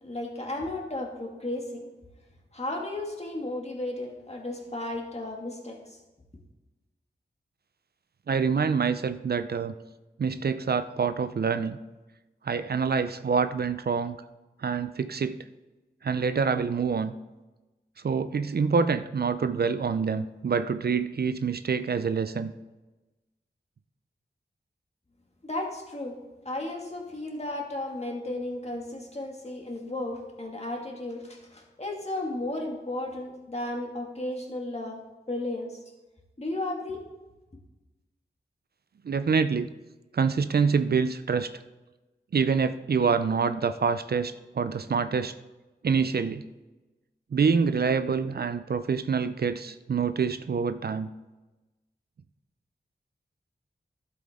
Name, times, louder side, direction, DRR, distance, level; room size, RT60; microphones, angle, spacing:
voice 1, 0.0-1.9 2.5-6.0 25.4-26.2 26.4-35.0 35.3-35.8 36.4-37.0, left 1 dB, 35° left, 0 dB, 2.1 m, -34 dB
voice 2, 8.3-9.7 10.2-11.8 12.4-14.2 14.6-15.4 16.0-17.1 18.0-22.5 39.0-39.7 40.1-41.5 42.3-45.3 45.8-46.4 47.3-51.1, right 5 dB, 60° right, 12 dB, 0.5 m, -26 dB
12.0 x 7.7 x 3.7 m, 1.1 s
wide cardioid pair, 55°, 18 cm